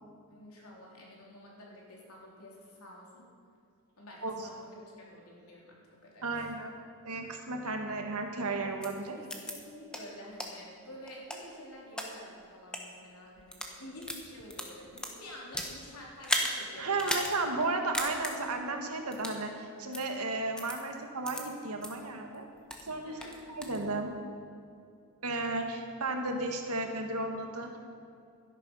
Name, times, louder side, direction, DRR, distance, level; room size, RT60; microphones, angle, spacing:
voice 1, 0.3-3.2 4.0-6.4 9.2-17.2 23.0-23.4, left 1 dB, 80° left, -3 dB, 3.4 m, -49 dB
voice 2, 6.2-6.7 7.0-9.2 16.8-22.5 22.8-23.2 23.5-24.1 25.2-27.8, right 3 dB, 85° right, 4 dB, 1.6 m, -34 dB
sound 1, 8.8-8.9 9.3-9.5 9.9-10.0 10.4-10.5 11.1-12.1 12.6-12.8 13.4-13.7 14.0-15.7 16.2-16.5 17.0-17.3 17.6-17.7 17.9-18.3 19.1-19.4 19.9-20.0 20.6-20.8 21.2-21.4 21.8-21.9 22.3-22.9 23.2-23.8, left 1 dB, 5° left, 1.1 m, -34 dB
12.5 x 11.0 x 5.5 m, 2.5 s
head